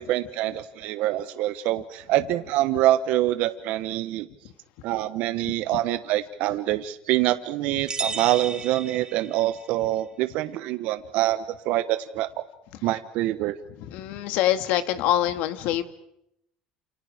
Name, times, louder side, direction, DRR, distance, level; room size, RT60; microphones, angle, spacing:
voice 1, 0.0-4.3 4.8-12.4 12.8-13.6, right 14 dB, 70° right, 11 dB, 1.1 m, -25 dB
sound 1, 7.9-9.7, right 4 dB, 30° right, 2.5 m, -33 dB
voice 2, 13.8-15.8, left 12 dB, 75° left, 9 dB, 1.9 m, -25 dB
29.5 x 29.0 x 5.0 m, 0.78 s
supercardioid pair, 80°, 3 cm